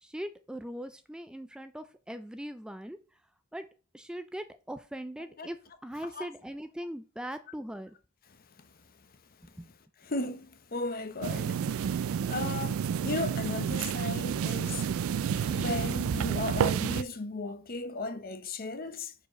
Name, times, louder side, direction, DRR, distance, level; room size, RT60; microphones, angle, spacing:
voice 1, 0.0-3.0 3.5-3.7 3.9-5.6 5.8-7.9 9.6-9.7, equal, 5° right, 0.3 m, -40 dB
voice 2, 8.3-8.7 10.0-19.1, left 3 dB, 45° left, 0.8 m, -36 dB
sound 1, 11.2-17.0, right 7 dB, 85° right, 0.3 m, -30 dB
4.8 x 4.7 x 6.1 m
head